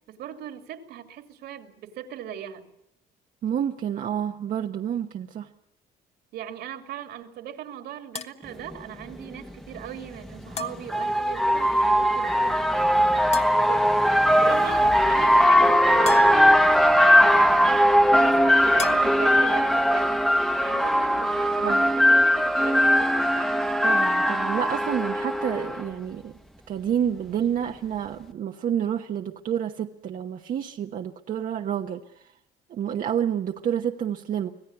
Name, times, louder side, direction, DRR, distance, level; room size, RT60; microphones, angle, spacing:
voice 1, 0.1-2.6 6.3-12.9 13.4-14.1 14.4-17.7 18.2-23.5, right 9 dB, 75° right, 6 dB, 2.8 m, -39 dB
voice 2, 3.4-5.5 21.6-21.8 23.8-26.3 26.7-32.0 32.7-34.5, right 9 dB, 55° right, 4 dB, 1.1 m, -29 dB
sound 1, 8.2-8.3 10.6-10.9 13.3-13.7 16.1-16.5 18.8-19.3, left 7 dB, 40° left, 1.3 m, -34 dB
sound 2, 8.7-8.8 10.2-25.8, equal, ahead, 1.1 m, -20 dB
25.5 x 17.0 x 9.7 m, 0.84 s
cardioid pair, 110°, 17 cm